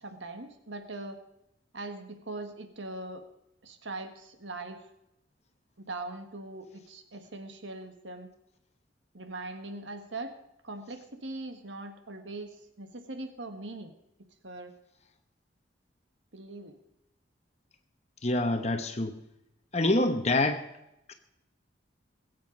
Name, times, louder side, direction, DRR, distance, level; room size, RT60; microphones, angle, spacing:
voice 1, 0.0-1.2 1.7-3.2 3.6-4.8 5.8-8.3 9.1-10.3 10.6-13.9 14.4-14.7 16.3-16.8, right 2 dB, 80° right, 7 dB, 1.6 m, -41 dB
voice 2, 18.2-19.2 19.7-20.6 21.1-21.2, left 2 dB, 35° left, 7 dB, 0.9 m, -26 dB
21.5 x 7.7 x 5.3 m, 0.86 s
head